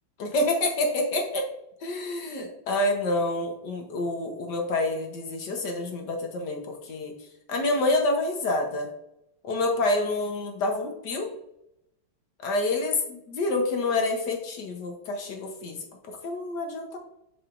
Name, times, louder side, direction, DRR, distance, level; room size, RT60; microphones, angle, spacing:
voice 1, 0.2-1.5 1.8-7.1 7.5-8.9 9.4-11.3 12.4-17.0, left 2 dB, 60° left, 3 dB, 1.4 m, -28 dB
7.6 x 4.9 x 2.5 m, 0.80 s
omnidirectional pair, 2.4 m